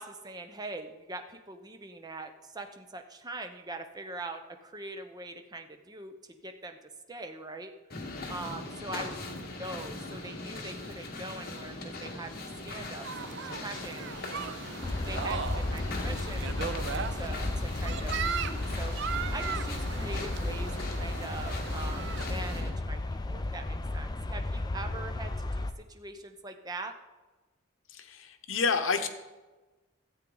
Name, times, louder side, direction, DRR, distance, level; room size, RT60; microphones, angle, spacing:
voice 1, 0.0-6.8 7.1-14.7 15.1-23.0 23.3-26.9, right 2 dB, 20° right, 6 dB, 0.7 m, -43 dB
sound 1, 7.9-22.7, left 2 dB, 50° left, 1.5 m, -40 dB
sound 2, 13.0-22.6, right 7 dB, 60° right, 0.5 m, -38 dB
sound 3, 14.8-25.7, left 2 dB, 20° left, 0.5 m, -34 dB
voice 2, 27.9-29.1, left 5 dB, 80° left, 8 dB, 0.9 m, -29 dB
13.0 x 8.4 x 3.9 m, 1.2 s
head